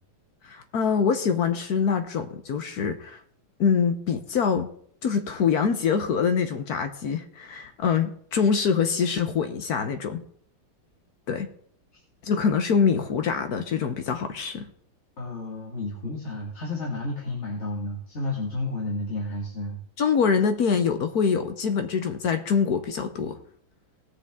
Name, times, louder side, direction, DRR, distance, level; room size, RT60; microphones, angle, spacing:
voice 1, 0.4-3.2 3.6-4.7 5.0-10.2 11.3-11.5 12.2-14.7 20.0-23.4, left 6 dB, 60° left, 8 dB, 1.2 m, -24 dB
voice 2, 15.2-19.8, left 2 dB, 35° left, -3 dB, 2.0 m, -31 dB
19.0 x 6.6 x 3.6 m, 0.62 s
omnidirectional pair, 2.2 m